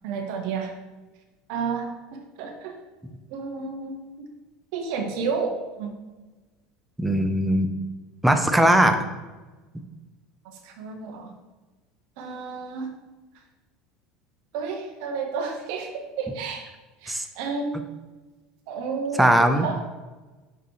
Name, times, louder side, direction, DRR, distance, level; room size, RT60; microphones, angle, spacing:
voice 1, 0.0-0.7 1.5-2.8 3.3-4.3 4.7-5.5 5.8-5.9 10.4-11.3 12.2-12.9 14.5-16.7 17.0-17.7 18.7-19.9, right 5 dB, 65° right, 3 dB, 1.4 m, -31 dB
voice 2, 7.0-7.7 8.2-9.0 17.1-17.2 19.2-19.7, right 1 dB, 5° right, 6 dB, 0.9 m, -19 dB
6.6 x 6.4 x 3.4 m, 1.2 s
hypercardioid pair, 85°, 0 cm